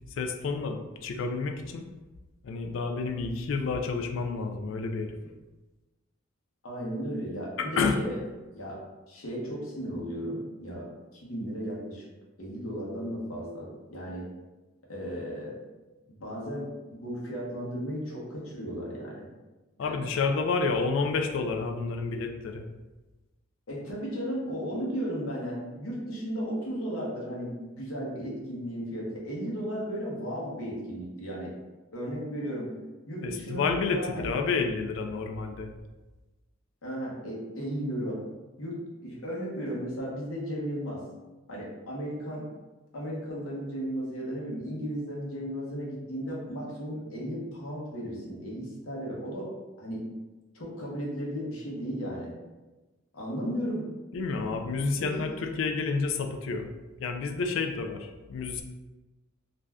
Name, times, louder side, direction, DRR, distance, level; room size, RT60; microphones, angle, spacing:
voice 1, 0.2-1.9 2.4-5.1 7.6-8.0 19.8-22.7 33.2-35.7 54.1-56.7 57.0-58.6, left 4 dB, 65° left, 5 dB, 0.3 m, -30 dB
voice 2, 6.6-8.2 8.5-8.8 9.1-12.0 12.4-14.3 14.9-15.6 16.2-19.3 19.8-20.0 23.7-31.5 31.9-32.7 33.1-34.3 36.8-38.2 38.6-38.8 39.0-41.0 41.5-42.5 42.9-49.5 49.8-50.0 50.5-52.3 53.1-53.9 54.3-54.5 54.8-55.1, equal, 85° left, -4 dB, 0.8 m, -35 dB
2.5 x 2.2 x 3.3 m, 1.2 s
head